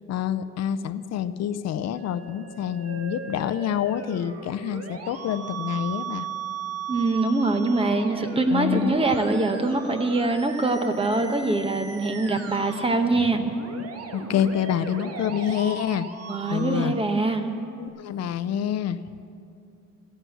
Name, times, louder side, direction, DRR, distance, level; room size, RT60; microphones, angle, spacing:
voice 1, 0.1-6.3 8.5-9.0 14.1-16.1 16.5-16.9 17.8-19.0, left 9 dB, 65° left, 13 dB, 0.5 m, -27 dB
Musical instrument, 1.9-17.9, right 5 dB, 55° right, 1.4 m, -38 dB
voice 2, 6.9-13.4 16.3-17.5, right 2 dB, 20° right, 6 dB, 1.0 m, -23 dB
14.5 x 11.0 x 7.9 m, 2.5 s
cardioid pair, 160°, 29 cm